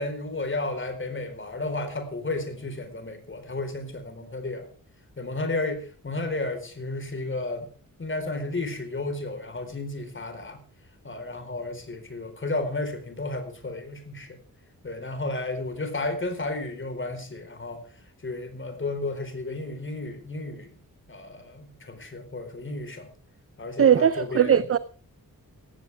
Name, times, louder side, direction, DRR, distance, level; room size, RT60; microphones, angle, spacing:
voice 1, 0.0-4.7 5.2-7.7 8.0-10.6 11.0-14.4 14.8-17.8 18.2-20.7 21.1-23.1 23.6-24.7, left 2 dB, 35° left, 4.3 m, -32 dB
voice 2, 23.8-24.8, right 8 dB, 40° right, 0.7 m, -19 dB
17.5 x 16.0 x 3.5 m
wide cardioid pair, 140°, 35 cm